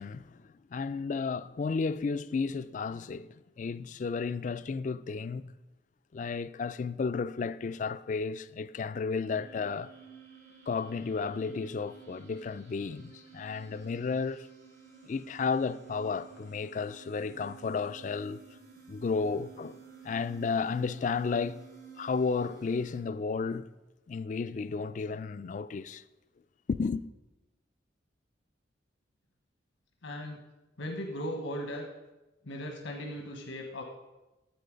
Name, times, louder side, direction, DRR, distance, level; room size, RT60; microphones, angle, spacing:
voice 1, 0.0-5.5 6.1-9.9 10.7-14.5 15.0-18.4 18.9-19.8 20.0-21.6 22.0-23.7 24.1-26.0 26.7-27.0, left 5 dB, 40° left, 0.3 m, -33 dB
sound 1, 9.3-23.0, right 6 dB, 60° right, 3.5 m, -53 dB
voice 2, 30.0-30.4 30.8-31.8 32.4-33.8, equal, 90° left, 1.1 m, -37 dB
10.5 x 7.7 x 5.1 m
head